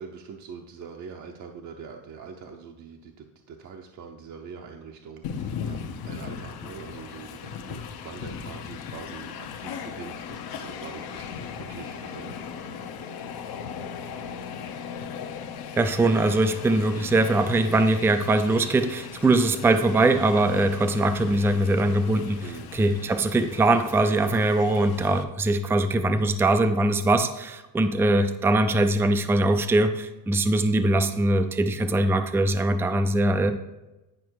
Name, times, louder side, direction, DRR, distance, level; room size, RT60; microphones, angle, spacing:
voice 1, 0.0-12.4 22.4-22.7, right 6 dB, 45° right, 3 dB, 0.8 m, -43 dB
Train, 5.2-25.2, left 7 dB, 65° left, 1.0 m, -38 dB
voice 2, 15.8-33.5, right 2 dB, 5° right, 8 dB, 0.4 m, -22 dB
10.0 x 5.5 x 4.7 m, 1.0 s
cardioid pair, 145°, 40 cm